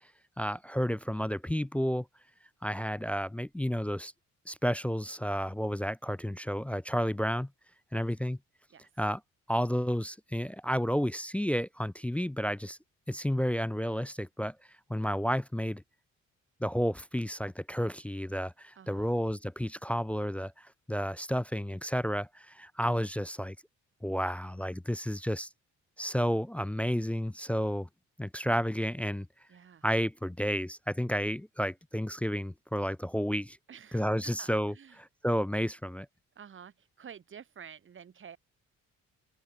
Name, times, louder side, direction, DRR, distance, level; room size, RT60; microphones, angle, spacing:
voice 1, 0.4-2.1 2.6-4.1 4.5-7.5 7.9-8.4 9.0-9.2 9.5-12.8 13.1-14.5 14.9-15.8 16.6-23.6 24.0-25.5 26.0-27.9 28.2-29.3 29.8-33.6 33.9-36.1, equal, 5° left, 0.3 m, -31 dB
voice 2, 18.7-19.2 29.5-29.8 33.7-35.0 36.3-38.4, right 7 dB, 40° right, 1.4 m, -50 dB
cardioid pair, 90°, 30 cm